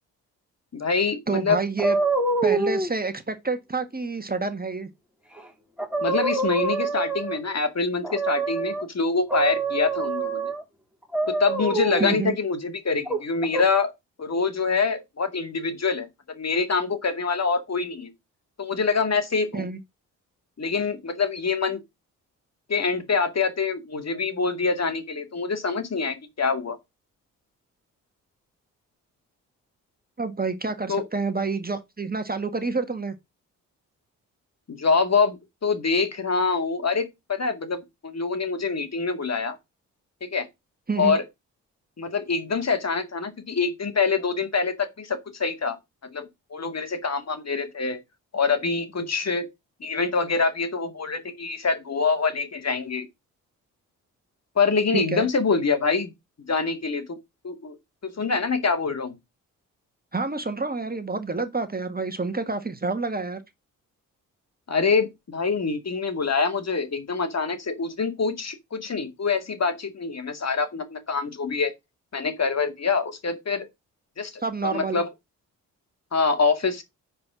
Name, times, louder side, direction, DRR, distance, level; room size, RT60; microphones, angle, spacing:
voice 1, 0.7-1.6 6.0-10.5 11.3-13.9 14.2-18.1 18.6-19.7 20.6-21.8 22.7-26.8 30.9-31.0 34.7-39.6 40.2-40.5 41.0-41.2 42.0-45.8 46.1-48.0 48.3-49.5 49.8-53.1 54.6-56.1 56.4-57.2 57.4-57.8 58.0-59.2 64.7-71.7 72.1-73.7 74.2-75.1 76.1-76.8, left 4 dB, 40° left, 2.2 m, -25 dB
voice 2, 1.3-2.0 2.4-4.9 12.0-12.3 19.5-19.8 30.2-33.1 40.9-41.2 54.9-55.3 60.1-63.4 74.4-75.0, right 4 dB, 25° right, 1.7 m, -28 dB
sound 1, 1.8-2.9 5.4-5.5 5.8-7.5 8.0-8.8 9.3-10.6 11.1-12.2 13.0-13.6, right 3 dB, 5° right, 2.9 m, -26 dB
9.5 x 4.5 x 6.2 m
hypercardioid pair, 45°, 38 cm